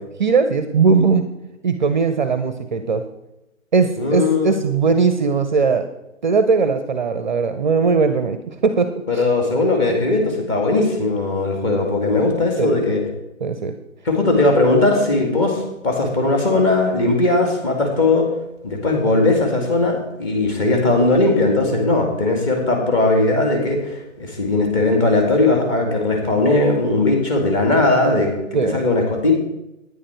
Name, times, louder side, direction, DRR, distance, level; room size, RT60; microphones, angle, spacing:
voice 1, 0.2-1.3 1.6-3.0 3.7-5.9 6.2-8.4 8.6-9.2 12.6-12.8 13.4-13.7 28.5-28.8, right 5 dB, 35° right, 10 dB, 0.6 m, -19 dB
voice 2, 4.0-4.5 9.1-13.0 14.0-18.3 18.6-29.3, left 2 dB, 25° left, 1 dB, 2.3 m, -18 dB
10.0 x 9.6 x 4.5 m, 0.92 s
figure-of-eight pair, 145°, 40 cm